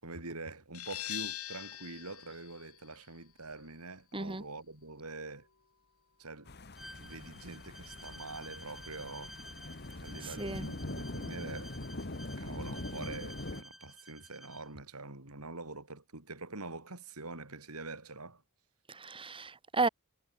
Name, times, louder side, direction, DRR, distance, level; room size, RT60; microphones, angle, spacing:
voice 1, 0.0-5.5 6.2-6.5 7.0-9.3 9.9-11.8 12.4-18.4, right 3 dB, 75° right, 4.4 m, -45 dB
sound 1, 0.7-6.2, left 13 dB, 70° left, 2.2 m, -45 dB
sound 2, 6.5-13.6, left 2 dB, 50° left, 2.0 m, -43 dB
Bowed string instrument, 6.8-14.7, equal, ahead, 5.2 m, -52 dB
voice 2, 10.2-10.7 18.9-19.9, right 3 dB, 25° right, 1.9 m, -33 dB
head